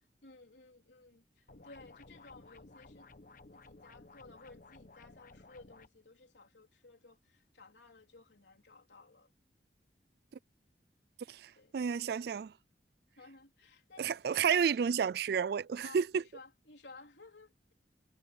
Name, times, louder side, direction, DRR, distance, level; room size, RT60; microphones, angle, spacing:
voice 1, 0.2-3.1 3.5-9.3 11.6-11.8 13.2-14.7 15.8-17.7, left 3 dB, 85° left, 3.8 m, -57 dB
sound 1, 1.5-5.9, left 3 dB, 50° left, 1.1 m, -56 dB
voice 2, 11.3-12.5 14.0-16.2, right 7 dB, 60° right, 0.3 m, -31 dB
head